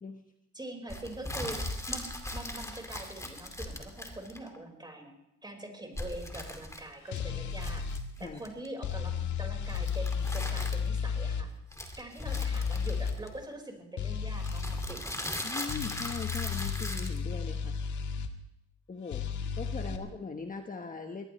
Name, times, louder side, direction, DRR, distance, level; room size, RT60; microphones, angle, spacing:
voice 1, 0.5-5.1 5.4-7.8 8.2-11.5 12.0-15.2 19.9-20.0, right 1 dB, 15° right, 2 dB, 5.1 m, -43 dB
sound 1, 0.9-4.6 5.9-7.2 7.5-8.7 9.7-11.0 11.7-13.5 14.4-17.2, left 1 dB, 10° left, 2.4 m, -39 dB
sound 2, 7.1-8.0 8.8-11.5 12.3-13.2 14.0-14.9 15.7-18.3 19.1-20.0, left 6 dB, 70° left, 1.7 m, -33 dB
voice 2, 15.4-17.8 18.9-19.3 19.6-21.2, left 4 dB, 25° left, 4 dB, 1.4 m, -40 dB
22.5 x 19.0 x 3.3 m, 0.83 s
cardioid pair, 90°, 30 cm